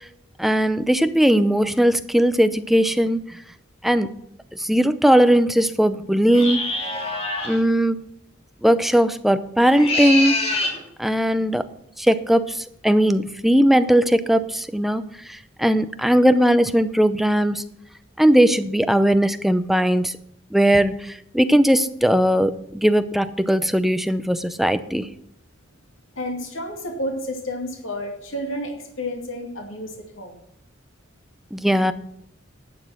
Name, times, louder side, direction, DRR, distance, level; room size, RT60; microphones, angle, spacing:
voice 1, 0.4-3.4 3.8-4.1 4.6-6.7 7.4-8.0 8.6-10.4 11.0-11.6 12.0-15.0 15.3-17.6 18.2-20.1 20.5-25.1 31.5-31.9, equal, ahead, 11 dB, 0.5 m, -19 dB
sound 1, 6.3-7.6 9.6-10.8, left 2 dB, 30° left, 2.8 m, -25 dB
voice 2, 26.2-30.5, left 1 dB, 80° left, 2 dB, 2.6 m, -31 dB
11.5 x 7.1 x 6.0 m, 0.75 s
head